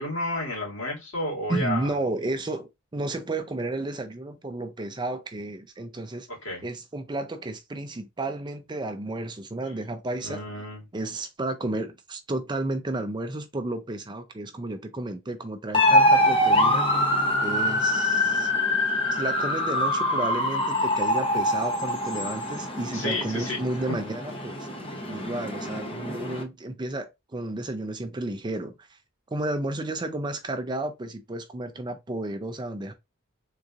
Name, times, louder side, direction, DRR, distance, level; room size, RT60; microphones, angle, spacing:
voice 1, 0.0-1.8 6.3-6.6 10.2-10.9 22.9-23.9, left 1 dB, 70° left, 2.4 m, -31 dB
voice 2, 1.5-6.3 6.6-10.6 10.9-17.0 17.4-18.5 19.1-24.7 25.1-29.0 29.3-32.9, right 2 dB, 20° right, 0.5 m, -32 dB
sound 1, 15.7-26.4, left 1 dB, 25° left, 0.9 m, -24 dB
3.7 x 2.9 x 2.5 m
head